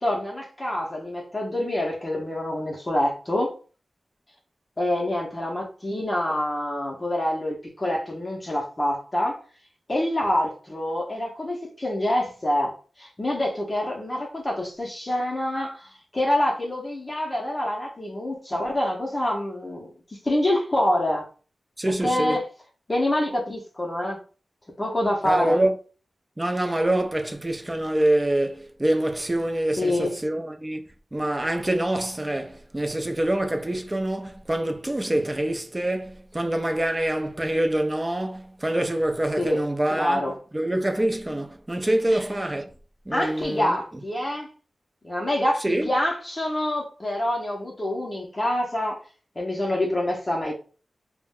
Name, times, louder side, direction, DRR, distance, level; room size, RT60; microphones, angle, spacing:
voice 1, 0.0-3.5 4.8-9.4 9.9-19.9 20.2-21.2 22.0-22.4 22.9-24.2 24.8-25.6 29.8-30.2 39.4-39.6 39.9-40.4 42.1-42.2 43.1-44.5 45.0-49.0 49.4-50.5, left 1 dB, 25° left, 0.6 m, -26 dB
voice 2, 21.8-22.4 25.2-25.8 26.4-40.2 40.5-42.7 43.1-43.8 45.6-45.9, right 1 dB, 20° right, 0.4 m, -25 dB
2.3 x 2.1 x 3.5 m
wide cardioid pair, 95°, 0 cm